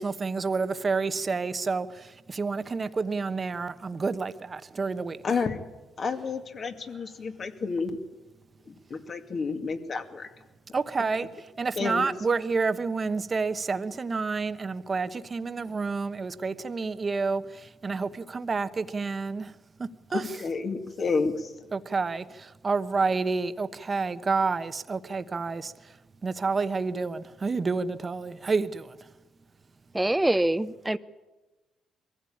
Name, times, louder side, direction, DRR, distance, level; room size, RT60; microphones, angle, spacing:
voice 1, 0.0-1.9 2.3-5.2 10.7-11.3 11.6-17.4 17.8-19.5 20.1-20.2 21.7-22.2 22.6-25.7 26.2-28.8, right 4 dB, 35° right, 1.1 m, -29 dB
voice 2, 5.2-5.6 6.0-8.0 8.7-10.3 11.8-12.1 20.1-21.5, left 4 dB, 45° left, 2.3 m, -30 dB
voice 3, 29.9-31.0, right 1 dB, 10° right, 0.8 m, -24 dB
22.5 x 15.5 x 8.7 m
cardioid pair, 90°, 0 cm